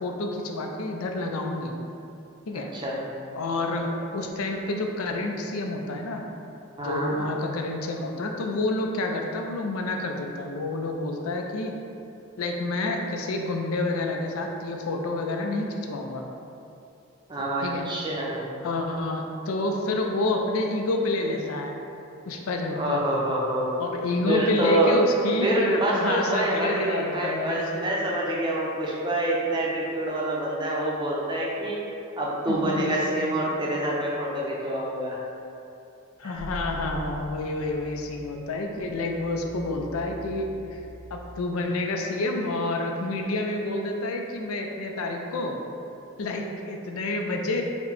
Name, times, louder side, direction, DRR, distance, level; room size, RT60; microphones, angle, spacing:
voice 1, 0.0-1.7 2.5-2.7 3.3-6.2 6.8-11.7 12.4-16.2 17.6-17.9 18.6-21.8 22.3-23.0 23.8-27.8 32.5-33.1 33.4-33.5 36.2-40.8 41.1-45.6 46.2-47.6, left 2 dB, 90° left, 2 dB, 0.4 m, -28 dB
voice 2, 2.7-3.1 6.8-7.2 17.3-18.5 22.7-23.8 24.3-24.9 25.4-31.8 32.2-35.2, right 1 dB, 20° right, -4 dB, 0.5 m, -26 dB
sound 1, 36.3-41.4, equal, 40° left, 0.7 m, -42 dB
4.4 x 2.1 x 4.0 m, 2.7 s
head